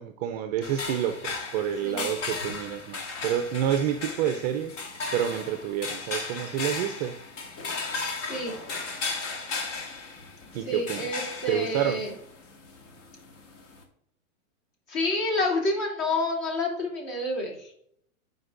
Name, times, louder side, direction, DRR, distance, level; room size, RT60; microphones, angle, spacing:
voice 1, 0.0-4.8 5.1-7.2 10.5-11.1 11.5-12.0, right 10 dB, 30° right, 8 dB, 0.4 m, -28 dB
sound 1, 0.6-13.8, left 4 dB, 60° left, 1.8 m, -36 dB
voice 2, 8.2-8.5 10.6-12.1 14.9-17.7, left 2 dB, 45° left, 0 dB, 2.8 m, -29 dB
9.5 x 5.1 x 2.5 m, 0.69 s
hypercardioid pair, 120°, 42 cm